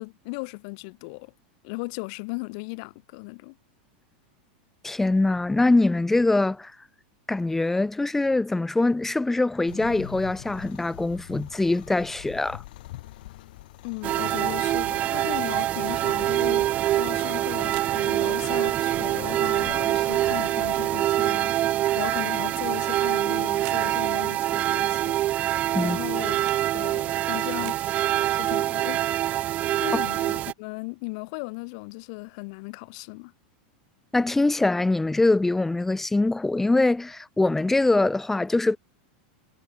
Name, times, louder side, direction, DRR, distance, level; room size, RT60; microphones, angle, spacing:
voice 1, 0.0-1.3 1.6-3.6 13.8-16.7 16.9-25.2 25.8-26.4 26.7-27.8 28.3-29.1 29.4-29.5 29.8-33.3, left 31 dB, 50° left, 2.7 m, -36 dB
voice 2, 4.8-6.7 7.3-12.6 25.7-26.0 34.1-38.8, left 2 dB, 5° left, 0.9 m, -23 dB
sound 1, 9.7-20.9, left 17 dB, 70° left, 4.0 m, -45 dB
sound 2, 14.0-30.5, right 14 dB, 30° right, 0.7 m, -25 dB
sound 3, 17.5-17.9 19.0-19.2 20.3-20.9 21.7-21.9 23.1-23.8 24.7-24.9 25.8-26.6 27.4-27.8, right 29 dB, 50° right, 5.6 m, -47 dB
supercardioid pair, 160°, 5 cm